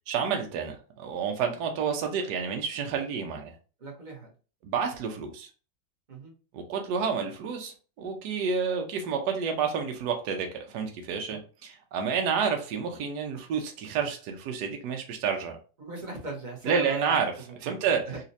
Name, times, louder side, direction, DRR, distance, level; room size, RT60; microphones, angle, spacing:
voice 1, 0.1-3.5 4.6-5.5 6.5-15.6 16.6-17.3 17.6-18.1, right 6 dB, 75° right, 3 dB, 1.2 m, -29 dB
voice 2, 3.8-4.3 6.1-6.3 11.3-11.4 15.8-17.1 17.5-17.8 18.1-18.2, right 2 dB, 30° right, -1 dB, 1.0 m, -38 dB
4.1 x 2.4 x 2.7 m, 0.35 s
omnidirectional pair, 1.9 m